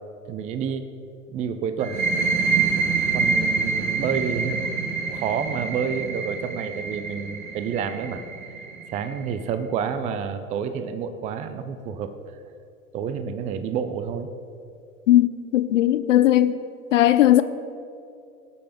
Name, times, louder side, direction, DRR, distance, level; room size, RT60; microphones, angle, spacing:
voice 1, 0.3-0.9 1.3-2.0 3.1-8.2 8.9-12.1 12.9-14.3, right 7 dB, 15° right, 0.5 m, -29 dB
sound 1, 1.8-9.3, right 4 dB, 60° right, 2.0 m, -26 dB
voice 2, 15.1-16.5 16.9-17.4, left 13 dB, 55° left, 0.6 m, -17 dB
17.5 x 6.6 x 5.3 m
figure-of-eight pair, 90°, 45 cm